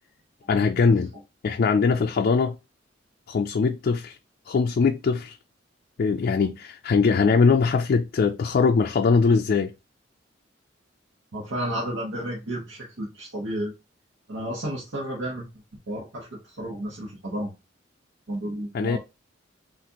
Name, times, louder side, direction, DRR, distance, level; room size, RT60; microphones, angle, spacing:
voice 1, 0.5-1.1 1.4-2.6 3.3-4.2 4.5-5.4 6.0-9.7 18.7-19.0, left 5 dB, 50° left, 0.3 m, -21 dB
voice 2, 11.3-13.7 14.3-15.5 15.9-17.5 18.3-19.0, right 1 dB, 80° right, 1.1 m, -32 dB
5.8 x 2.5 x 2.9 m
head